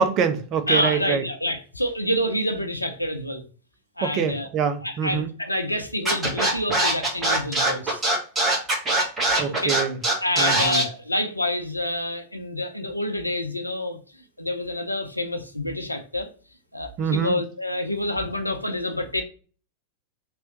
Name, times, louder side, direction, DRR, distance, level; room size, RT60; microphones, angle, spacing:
voice 1, 0.0-1.2 4.0-5.3 9.4-10.0 10.4-10.9 17.0-17.4, right 6 dB, 35° right, 0.5 m, -25 dB
voice 2, 0.7-3.4 4.0-4.5 4.8-8.0 9.5-9.7 10.2-16.3 16.7-19.2, left 1 dB, 85° left, 0.5 m, -27 dB
Scratching (performance technique), 6.0-10.8, right 2 dB, 20° right, 1.4 m, -21 dB
3.0 x 3.0 x 3.0 m
figure-of-eight pair, 90°, 0 cm